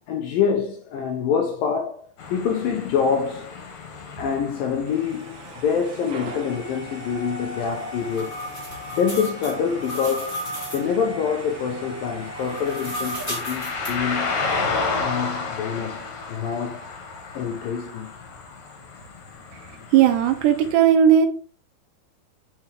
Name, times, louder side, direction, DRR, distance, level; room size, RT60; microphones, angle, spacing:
voice 1, 0.1-3.5 4.2-8.3 8.9-10.4 10.7-14.4 15.0-16.9 17.3-18.1, left 6 dB, 80° left, 2.1 m, -26 dB
sound 1, 2.2-20.7, left 4 dB, 55° left, 2.3 m, -34 dB
sound 2, 4.9-14.7, right 1 dB, 55° right, 2.6 m, -39 dB
sound 3, 7.6-10.9 12.3-13.9, equal, 5° left, 1.9 m, -34 dB
voice 2, 19.9-21.3, right 9 dB, 85° right, 3.1 m, -16 dB
8.7 x 4.6 x 3.4 m
omnidirectional pair, 4.9 m